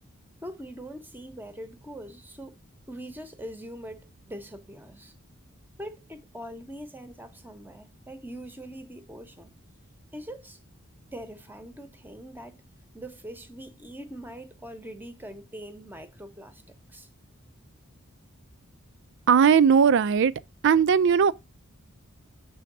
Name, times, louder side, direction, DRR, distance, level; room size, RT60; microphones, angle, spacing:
voice 1, 0.4-2.6 2.9-5.1 5.8-9.5 10.1-10.6 11.1-12.6 12.9-17.1, equal, 10° right, 0.9 m, -42 dB
voice 2, 19.3-20.3 20.6-21.3, right 7 dB, 60° right, 0.4 m, -18 dB
7.1 x 3.4 x 5.9 m
head